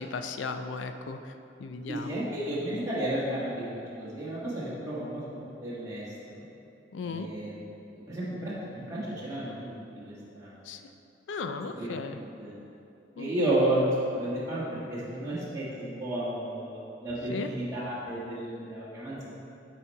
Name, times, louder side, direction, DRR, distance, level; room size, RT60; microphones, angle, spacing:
voice 1, 0.0-1.3 1.6-2.8 6.9-7.3 10.6-10.8 11.3-12.2 13.2-13.5 17.3-17.5, left 4 dB, 80° left, 8 dB, 0.4 m, -36 dB
voice 2, 1.9-5.2 5.6-6.0 6.3-6.4 7.0-7.6 8.1-10.6 11.8-11.9 12.4-12.5 13.2-19.3, right 1 dB, 20° right, -9 dB, 1.4 m, -32 dB
8.2 x 4.3 x 4.5 m, 2.8 s
head